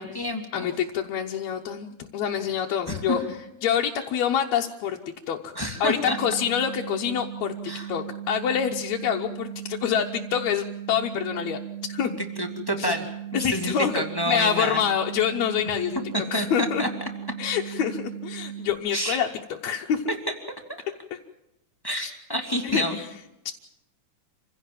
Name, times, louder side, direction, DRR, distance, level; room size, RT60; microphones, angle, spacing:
voice 1, 0.0-0.7 2.9-3.2 5.5-6.2 7.7-7.9 12.4-14.8 16.1-16.9 18.9-19.2 20.1-20.2 21.8-23.0, equal, 10° left, 5 dB, 1.3 m, -28 dB
voice 2, 0.5-3.2 3.6-5.0 5.3-7.5 7.9-11.6 11.9-12.1 12.8-13.0 13.3-14.0 14.3-16.0 16.3-16.8 17.4-20.1 22.0-22.1 22.6-23.1 23.5-23.6, left 8 dB, 70° left, 0 dB, 2.1 m, -26 dB
sound 1, 6.0-18.7, right 10 dB, 35° right, 5.8 m, -37 dB
27.0 x 16.0 x 7.6 m, 0.86 s
omnidirectional pair, 3.6 m